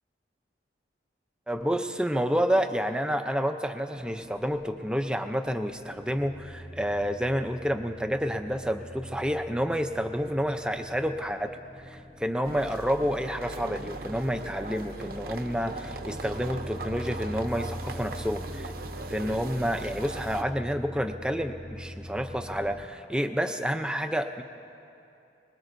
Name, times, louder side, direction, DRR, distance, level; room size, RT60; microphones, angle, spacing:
voice 1, 1.5-11.5 11.8-18.7 19.1-24.4, equal, 5° right, 6 dB, 0.5 m, -29 dB
sound 1, 3.9-22.9, equal, 20° left, 0.8 m, -44 dB
sound 2, 12.4-20.4, right 2 dB, 55° right, 0.7 m, -39 dB
24.0 x 21.0 x 2.6 m, 2.7 s
head